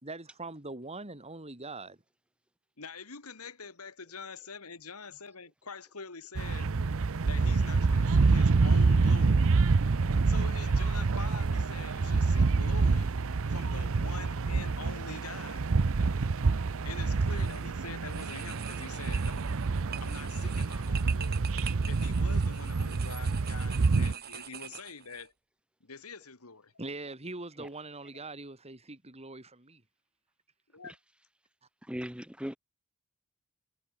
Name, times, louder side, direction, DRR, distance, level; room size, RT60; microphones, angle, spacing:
voice 1, 0.0-2.0 26.8-29.8, right 2 dB, 30° right, 3.4 m, -42 dB
voice 2, 2.8-6.7 7.2-9.5 10.2-13.1 13.5-15.7 16.8-19.5 20.0-21.4 21.8-25.3 25.8-26.7 30.7-31.0, left 5 dB, 90° left, 2.5 m, -45 dB
sound 1, 6.3-24.1, right 4 dB, 65° right, 0.7 m, -27 dB
sound 2, 17.3-17.7 18.0-25.3, right 9 dB, 45° right, 1.9 m, -45 dB
voice 3, 31.8-32.6, equal, 5° right, 2.8 m, -38 dB
head